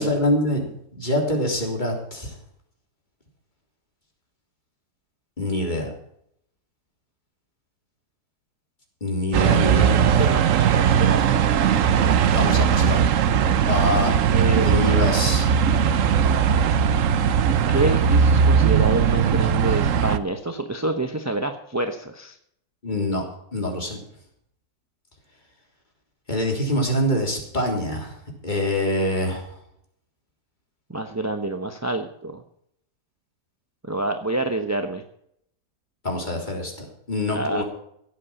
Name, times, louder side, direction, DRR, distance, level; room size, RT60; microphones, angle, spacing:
voice 1, 0.0-2.3 5.4-5.9 9.0-10.3 12.3-13.0 13.7-14.2 14.6-15.5 22.8-23.2 23.5-24.0 26.3-28.2 28.4-29.4 36.0-37.6, left 1 dB, 30° left, 1 dB, 3.5 m, -25 dB
sound 1, 9.3-20.2, right 7 dB, 60° right, 1.0 m, -19 dB
voice 2, 10.1-11.7 13.5-13.6 14.2-15.0 17.7-22.4 30.9-32.4 33.8-35.0 37.3-37.6, right 2 dB, 15° right, 6 dB, 0.8 m, -27 dB
16.0 x 8.5 x 7.1 m, 0.71 s
omnidirectional pair, 1.7 m